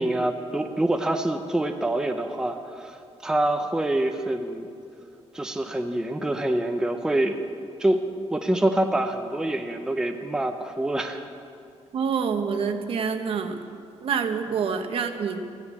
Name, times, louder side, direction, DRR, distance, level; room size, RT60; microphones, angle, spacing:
voice 1, 0.0-4.7 5.3-7.4 7.8-8.0 8.3-11.2, right 1 dB, 5° right, 5 dB, 0.6 m, -26 dB
voice 2, 11.9-13.6 14.0-15.4, right 6 dB, 55° right, 7 dB, 1.0 m, -26 dB
15.0 x 10.0 x 8.3 m, 2.4 s
wide cardioid pair, 180°, 11 cm